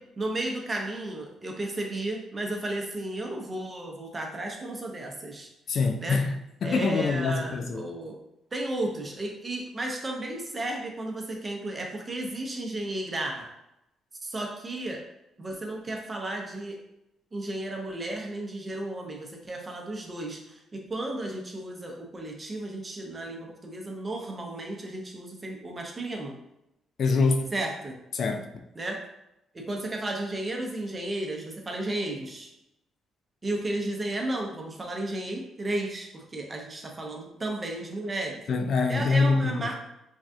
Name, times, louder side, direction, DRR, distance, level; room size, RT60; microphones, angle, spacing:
voice 1, 0.2-5.5 6.0-6.2 6.6-8.2 8.5-13.5 14.2-15.0 15.4-16.8 17.3-26.3 27.5-27.9 28.8-29.0 29.5-32.5 33.4-38.4 38.9-39.7, right 1 dB, 25° right, 1 dB, 0.6 m, -33 dB
voice 2, 5.7-7.9 27.0-27.5 28.1-28.5 38.5-39.7, left 4 dB, 60° left, 4 dB, 0.3 m, -25 dB
3.3 x 2.2 x 2.6 m, 0.86 s
cardioid pair, 90°, 0 cm